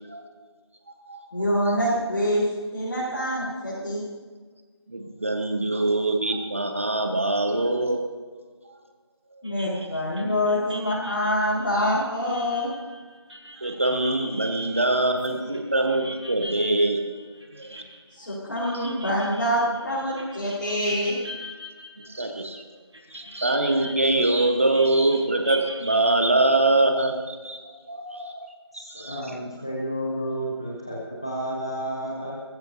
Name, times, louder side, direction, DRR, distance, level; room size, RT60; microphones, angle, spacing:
voice 1, 1.3-2.4 2.7-4.0 9.4-12.7 18.1-21.1, equal, 40° left, -8 dB, 4.5 m, -25 dB
voice 2, 4.9-8.0 9.4-9.5 9.9-10.0 13.6-17.0 17.6-17.8 18.7-18.8 22.1-22.6 23.1-29.2, right 2 dB, 30° right, 4 dB, 1.2 m, -24 dB
sound 1, 9.4-22.6 22.9-26.4, equal, 75° right, 5.5 m, -42 dB
voice 3, 28.7-32.4, right 1 dB, 10° left, -4 dB, 0.8 m, -31 dB
21.0 x 15.0 x 2.8 m, 1.5 s
figure-of-eight pair, 175°, 15 cm